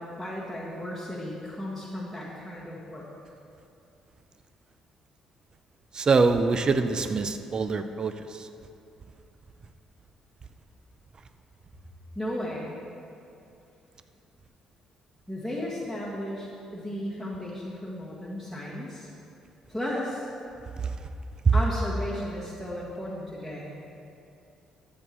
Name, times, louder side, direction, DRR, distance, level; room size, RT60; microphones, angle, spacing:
voice 1, 0.0-3.0 12.1-12.7 15.3-19.1 19.7-20.3 21.5-23.7, left 1 dB, 5° right, -6 dB, 1.8 m, -34 dB
voice 2, 5.9-8.5, right 4 dB, 40° right, 9 dB, 0.5 m, -24 dB
13.5 x 8.3 x 3.0 m, 2.7 s
hypercardioid pair, 45°, 2 cm